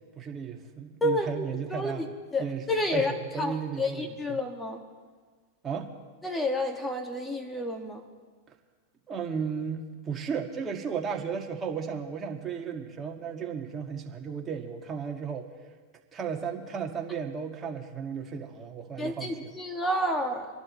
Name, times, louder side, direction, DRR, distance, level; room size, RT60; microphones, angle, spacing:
voice 1, 0.2-2.7 2.9-4.4 5.6-5.9 9.1-15.5 16.1-19.5, right 6 dB, 25° right, 1 dB, 1.9 m, -34 dB
voice 2, 1.0-1.5 1.7-2.1 2.3-3.1 3.4-4.8 6.2-8.0 19.0-20.5, left 1 dB, 10° left, 3 dB, 2.0 m, -30 dB
27.0 x 11.5 x 3.2 m, 1.5 s
hypercardioid pair, 110°, 0 cm